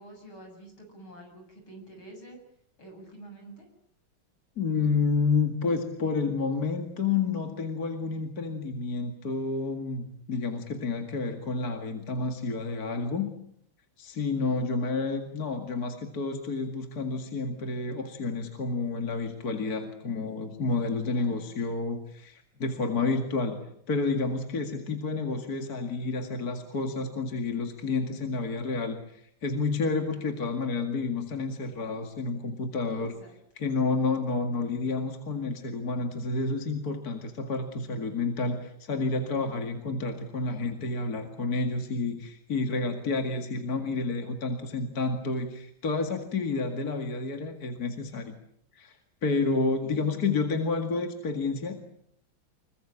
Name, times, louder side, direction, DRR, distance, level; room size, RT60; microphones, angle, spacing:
voice 1, 0.0-2.4 2.8-3.7 14.4-14.7 21.1-21.5 30.1-30.3 32.9-33.4 49.8-50.6, right 2 dB, 70° left, 4 dB, 8.4 m, -48 dB
voice 2, 4.6-13.3 14.0-23.6 23.9-33.1 33.6-48.3 48.8-51.8, left 4 dB, 45° left, 5 dB, 2.5 m, -30 dB
25.5 x 22.5 x 8.8 m, 0.71 s
omnidirectional pair, 2.3 m